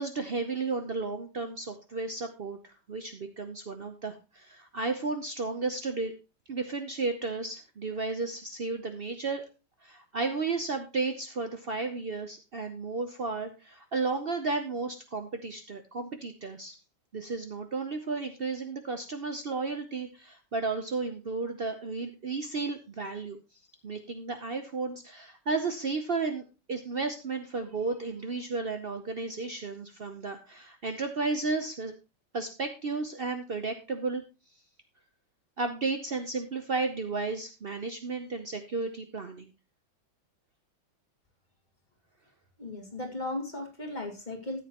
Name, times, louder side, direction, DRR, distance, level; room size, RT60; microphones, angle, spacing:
voice 1, 0.0-6.1 6.5-9.4 9.8-16.7 17.1-23.4 23.8-26.4 26.7-31.9 32.3-34.2 35.6-39.5, right 3 dB, 90° right, 7 dB, 0.5 m, -33 dB
voice 2, 42.6-44.6, left 2 dB, 25° left, 2 dB, 1.9 m, -36 dB
13.5 x 7.9 x 3.0 m, 0.30 s
omnidirectional pair, 2.2 m